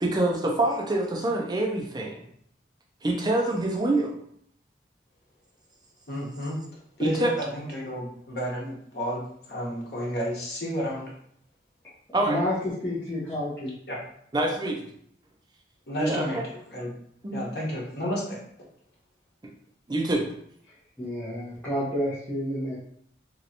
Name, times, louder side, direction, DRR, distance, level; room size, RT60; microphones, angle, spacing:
voice 1, 0.0-2.2 3.0-4.2 7.0-7.3 12.1-12.4 14.3-14.9 16.0-16.4 17.2-17.6 19.4-19.5 19.9-20.3, right 1 dB, 25° right, 0 dB, 0.5 m, -26 dB
voice 2, 6.1-6.6 7.0-11.1 13.9-14.0 15.9-16.4 16.7-16.9 17.3-18.4, equal, 60° left, -4 dB, 1.0 m, -31 dB
voice 3, 12.2-12.5 12.8-13.7 21.0-22.8, equal, 10° left, -11 dB, 0.8 m, -29 dB
3.0 x 2.9 x 2.6 m, 0.67 s
head